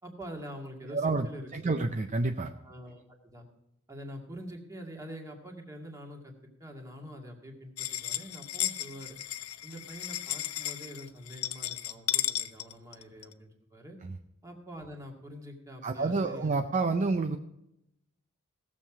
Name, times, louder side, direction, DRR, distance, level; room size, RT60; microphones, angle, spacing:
voice 1, 0.0-1.8 2.6-3.4 3.9-6.3 6.6-9.2 9.6-14.0 14.4-16.5, equal, 15° right, 1 dB, 2.0 m, -45 dB
voice 2, 0.9-2.5 14.0-14.2 15.8-17.4, right 3 dB, 35° right, 6 dB, 0.5 m, -29 dB
sound 1, 7.8-13.3, left 13 dB, 80° left, 0.6 m, -34 dB
17.5 x 7.5 x 4.9 m, 0.84 s
head